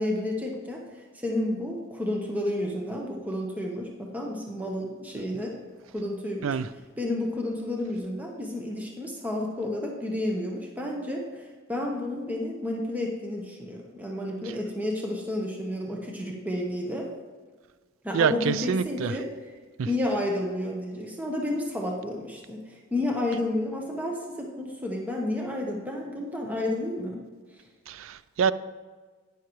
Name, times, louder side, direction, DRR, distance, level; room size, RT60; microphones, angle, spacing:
voice 1, 0.0-5.6 5.9-6.6 7.0-17.1 18.0-19.3 19.9-27.2 27.6-27.7, left 1 dB, 10° right, -1 dB, 0.9 m, -31 dB
voice 2, 18.1-19.2 19.8-19.9 27.9-28.5, right 6 dB, 90° right, 16 dB, 0.4 m, -26 dB
11.5 x 9.6 x 3.1 m, 1.5 s
head